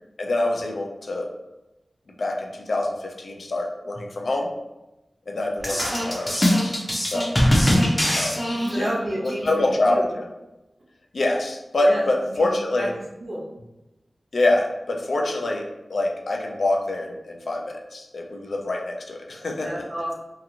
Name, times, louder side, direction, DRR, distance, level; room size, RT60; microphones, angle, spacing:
voice 1, 0.2-1.3 2.2-4.5 5.3-6.8 7.1-7.3 8.1-8.3 8.8-8.9 9.2-10.2 11.1-12.9 14.3-19.8, left 2 dB, 75° left, 2 dB, 0.4 m, -25 dB
sound 1, 5.6-9.0, equal, 25° left, 0.6 m, -21 dB
voice 2, 7.5-7.8 8.5-10.1 11.8-12.0 12.3-12.5 12.8-12.9 13.2-13.4 19.6-20.1, right 1 dB, 50° right, -5 dB, 0.9 m, -31 dB
2.8 x 2.5 x 2.6 m, 0.98 s
wide cardioid pair, 90°, 0 cm